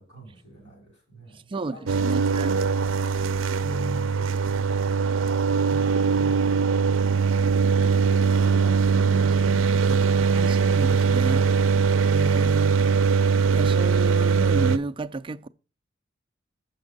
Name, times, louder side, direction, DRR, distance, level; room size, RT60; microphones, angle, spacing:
voice 1, 0.0-2.1 3.6-8.3, right 1 dB, 60° left, 4.8 m, -43 dB
voice 2, 1.5-2.6 8.5-10.0 10.3-11.5 12.1-13.0 13.5-15.5, right 3 dB, 25° right, 0.4 m, -33 dB
sound 1, 1.9-14.8, right 5 dB, 85° right, 0.5 m, -21 dB
7.1 x 6.0 x 5.2 m
head